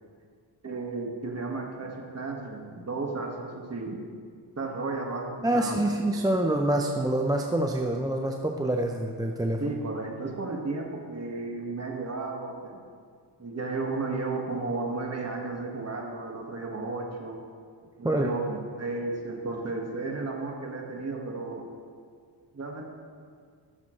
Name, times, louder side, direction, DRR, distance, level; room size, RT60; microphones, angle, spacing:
voice 1, 0.6-4.0 4.6-5.8 9.6-12.8 13.4-17.4 17.8-21.7 22.5-22.8, right 3 dB, 30° right, 0 dB, 1.7 m, -33 dB
voice 2, 5.4-9.8 18.0-18.3, right 1 dB, 10° right, 2 dB, 0.6 m, -26 dB
14.0 x 7.2 x 3.2 m, 2.1 s
cardioid pair, 70°, 47 cm